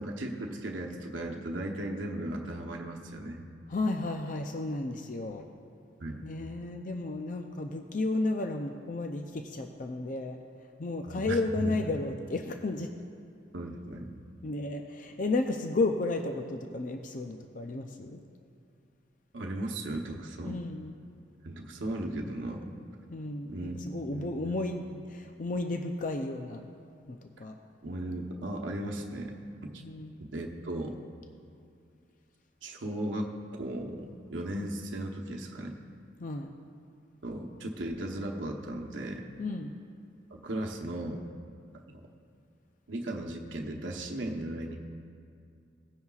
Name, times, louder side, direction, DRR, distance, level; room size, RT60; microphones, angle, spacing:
voice 1, 0.0-3.4 6.0-6.2 11.1-11.7 13.5-14.1 19.3-20.6 21.4-22.7 23.5-23.7 24.1-24.6 27.8-29.3 29.6-29.8 30.3-31.0 32.6-35.8 37.2-39.2 40.3-41.2 41.9-42.0 42.9-44.8, right 1 dB, 80° right, 0 dB, 0.9 m, -36 dB
voice 2, 3.7-5.5 6.2-10.4 10.8-12.9 14.4-18.2 20.4-20.9 23.1-26.6 27.1-27.5 29.8-30.2 36.2-36.5 39.4-39.7, left 2 dB, 45° left, 5 dB, 0.5 m, -33 dB
18.0 x 9.5 x 2.4 m, 2.5 s
head